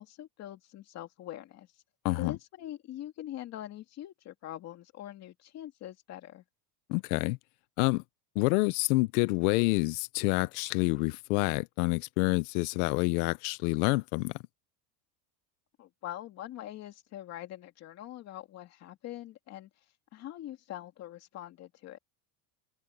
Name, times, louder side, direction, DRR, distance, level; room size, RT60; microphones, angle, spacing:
voice 1, 0.0-1.7 2.2-6.4 15.8-19.7 20.1-22.0, left 13 dB, 35° left, 2.7 m, -43 dB
voice 2, 2.0-2.4 6.9-7.4 7.8-8.0 8.4-14.3, left 24 dB, 75° left, 0.7 m, -27 dB
open air
cardioid pair, 180°, 46 cm